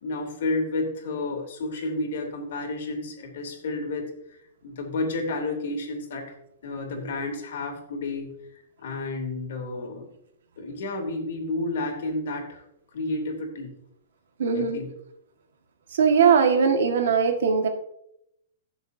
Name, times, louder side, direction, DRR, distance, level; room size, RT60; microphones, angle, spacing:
voice 1, 0.0-6.3 6.6-8.3 8.8-10.1 10.6-12.6 12.9-13.7 14.5-14.9, left 2 dB, 65° left, 1 dB, 3.1 m, -31 dB
voice 2, 14.4-14.8 15.9-17.7, right 6 dB, 75° right, 5 dB, 1.7 m, -20 dB
16.5 x 7.1 x 2.8 m, 0.78 s
hypercardioid pair, 165°, 0 cm